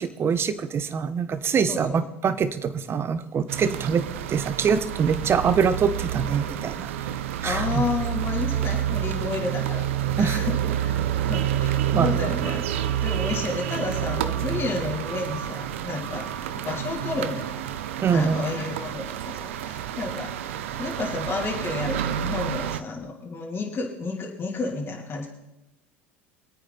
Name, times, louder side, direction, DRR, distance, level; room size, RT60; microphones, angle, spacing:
voice 1, 0.0-7.1 7.4-7.8 10.2-10.4 11.9-12.1 18.0-18.4, right 6 dB, 35° right, 12 dB, 1.3 m, -24 dB
voice 2, 1.7-2.0 7.4-9.8 10.2-12.6 13.0-16.3 16.6-17.5 18.1-20.3 20.8-25.3, left 3 dB, 35° left, -2 dB, 3.4 m, -31 dB
sound 1, 3.5-22.8, right 11 dB, 75° right, 0.8 m, -29 dB
24.5 x 9.1 x 4.2 m, 0.95 s
hypercardioid pair, 75°, 7 cm